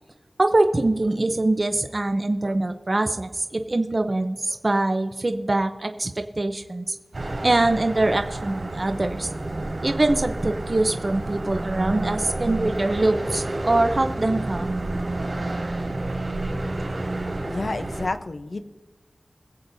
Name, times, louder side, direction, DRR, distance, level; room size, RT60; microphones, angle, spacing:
voice 1, 0.4-7.0 7.4-9.3 9.8-14.7, right 2 dB, 45° right, 6 dB, 0.7 m, -23 dB
sound 1, 7.1-18.1, right 2 dB, 70° right, 3.0 m, -30 dB
voice 2, 17.5-18.6, left 2 dB, 65° left, 8 dB, 0.7 m, -29 dB
22.0 x 7.8 x 2.7 m, 1.2 s
wide cardioid pair, 60°, 0 cm